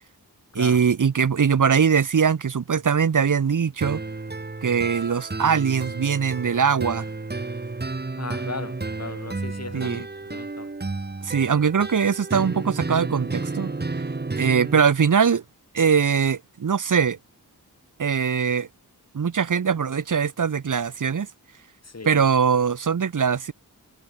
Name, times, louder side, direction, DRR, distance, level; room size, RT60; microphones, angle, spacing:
voice 1, 0.5-4.0 4.6-7.1 9.7-10.0 11.2-13.7 14.4-15.4 15.7-17.2 18.0-18.7 19.1-21.3 22.1-23.5, right 6 dB, 55° right, 0.8 m, -21 dB
sound 1, 3.8-14.8, right 3 dB, 25° right, 1.1 m, -32 dB
voice 2, 8.1-10.7 21.8-22.3, left 4 dB, 40° left, 1.7 m, -37 dB
wide cardioid pair, 70°, 38 cm